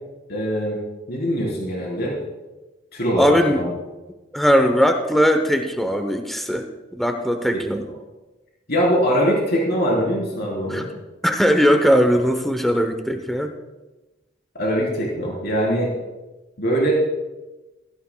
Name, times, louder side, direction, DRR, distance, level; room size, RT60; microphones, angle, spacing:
voice 1, 0.3-0.8 1.1-2.1 2.9-3.6 7.5-7.9 8.7-10.9 14.5-15.9 16.6-16.9, equal, 55° left, -3 dB, 3.8 m, -22 dB
voice 2, 3.2-3.6 4.3-6.6 6.9-7.8 10.7-10.8 11.2-13.5, equal, ahead, 5 dB, 0.8 m, -19 dB
16.5 x 14.5 x 2.3 m, 1.1 s
head